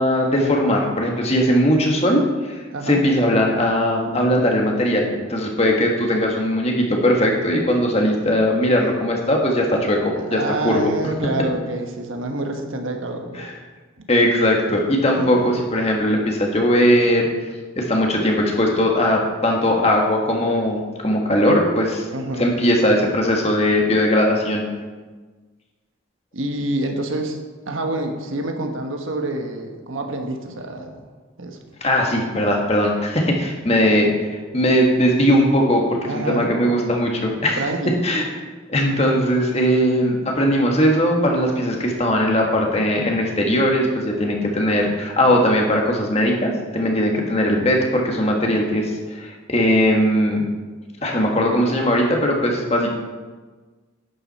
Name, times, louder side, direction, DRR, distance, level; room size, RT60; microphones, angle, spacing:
voice 1, 0.0-2.5 2.8-10.8 13.4-13.5 14.1-17.5 17.8-22.0 22.4-24.6 31.8-37.6 38.0-38.3 38.7-50.5 51.0-52.9, equal, 30° left, 0 dB, 1.6 m, -19 dB
voice 2, 2.7-3.0 10.2-13.5 14.0-14.1 15.2-15.6 22.1-22.5 26.3-27.4 27.7-31.0 31.4-31.6 36.0-36.5 37.6-37.9, right 2 dB, 80° right, 4 dB, 1.3 m, -27 dB
11.5 x 9.2 x 4.2 m, 1.3 s
head